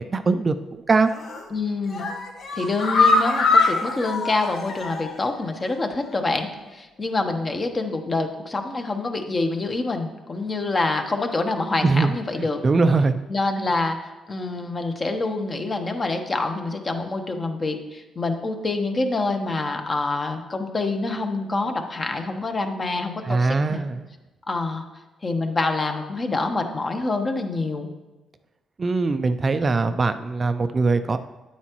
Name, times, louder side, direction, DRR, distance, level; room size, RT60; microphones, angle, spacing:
voice 1, 0.1-1.1 11.8-12.1 12.4-13.2 13.6-13.7 23.3-24.1 28.8-31.2, right 3 dB, 35° right, 10 dB, 0.4 m, -21 dB
sound 1, 1.1-1.5 1.9-5.3 5.6-5.7 6.0-6.1, left 3 dB, 65° left, 1.1 m, -22 dB
voice 2, 1.5-2.1 2.5-12.6 13.3-23.8 24.5-24.9 25.2-27.9, left 3 dB, 30° left, 5 dB, 1.0 m, -26 dB
9.2 x 8.3 x 3.0 m, 1.2 s
cardioid pair, 90°, 0 cm